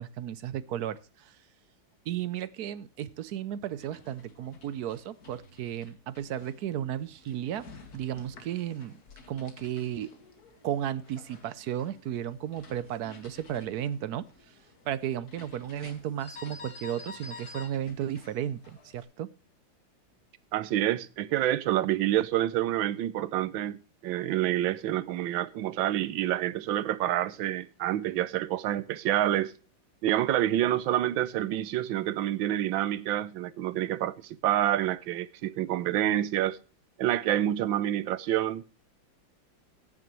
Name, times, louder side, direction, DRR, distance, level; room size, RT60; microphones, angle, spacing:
voice 1, 0.0-1.4 2.1-9.0 9.3-10.2 10.6-14.5 14.8-19.3, right 10 dB, 65° right, 1.0 m, -34 dB
sound 1, 3.7-19.0, left 3 dB, 55° left, 2.2 m, -51 dB
voice 2, 20.5-29.5 30.0-36.6 37.0-38.6, right 12 dB, 85° right, 1.5 m, -28 dB
15.0 x 9.8 x 3.1 m
omnidirectional pair, 2.1 m